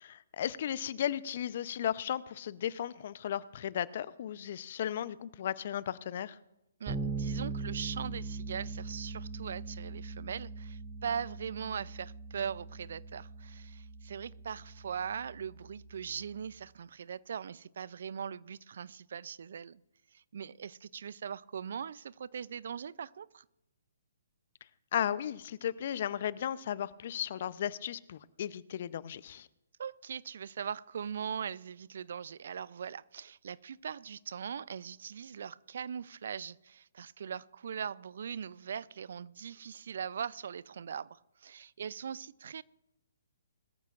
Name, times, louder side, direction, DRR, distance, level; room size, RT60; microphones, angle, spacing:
voice 1, 0.0-6.4 24.9-29.5, left 10 dB, 50° left, 18 dB, 0.6 m, -35 dB
voice 2, 6.8-19.8 20.1-23.4 29.8-42.6, right 7 dB, 60° right, 21 dB, 0.4 m, -40 dB
Bass guitar, 6.9-16.5, right 3 dB, 25° right, 2.4 m, -41 dB
21.5 x 14.0 x 2.5 m, 0.90 s
figure-of-eight pair, 135°, 0 cm